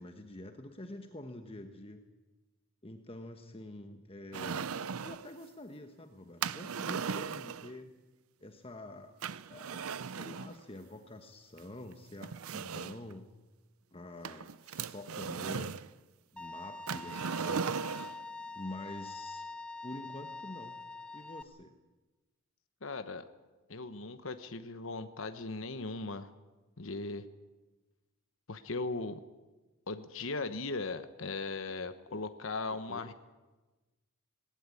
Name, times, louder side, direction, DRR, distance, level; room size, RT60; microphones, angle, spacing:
voice 1, 0.0-2.0 2.8-4.7 5.0-7.9 8.4-9.1 9.5-13.3 13.9-15.7 16.3-17.7 18.5-19.4 19.8-20.8 21.1-21.7 32.1-32.2 32.7-33.1, left 1 dB, 25° left, 6 dB, 1.2 m, -47 dB
sound 1, 4.3-5.3 6.4-7.7 9.2-10.5 11.6-11.7 12.2-13.1 14.2-15.9 16.9-18.2, right 6 dB, 85° right, 0.6 m, -37 dB
Bowed string instrument, 16.4-21.4, left 3 dB, 5° left, 0.8 m, -44 dB
voice 2, 22.8-23.2 23.7-26.3 26.8-27.3 28.5-29.2 29.9-33.1, left 3 dB, 65° left, 10 dB, 1.1 m, -38 dB
19.0 x 18.0 x 9.8 m, 1.2 s
head